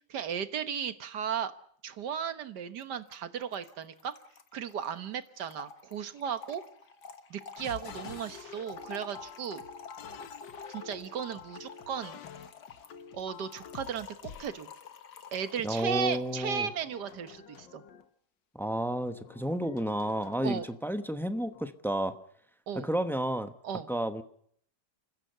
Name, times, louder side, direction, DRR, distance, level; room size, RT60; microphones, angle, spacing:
voice 1, 0.1-1.5 1.8-4.2 4.5-6.6 7.3-9.6 10.7-12.2 13.1-14.7 15.3-17.8 20.4-20.7 22.7-22.9 23.6-23.9, right 7 dB, 70° right, 11 dB, 1.8 m, -35 dB
Trickle dribble / Fill (with liquid), 2.8-2.9 3.1-3.2 3.4-16.5, left 5 dB, 65° left, 1.9 m, -49 dB
sound 1, 7.6-14.6 16.4-18.1 19.1-20.8 21.4-21.7, left 7 dB, 85° left, 1.8 m, -48 dB
voice 2, 15.6-16.7 18.5-22.1 22.8-23.5 23.9-24.2, right 1 dB, ahead, 9 dB, 0.7 m, -31 dB
29.0 x 15.0 x 6.8 m, 0.63 s
omnidirectional pair, 1.9 m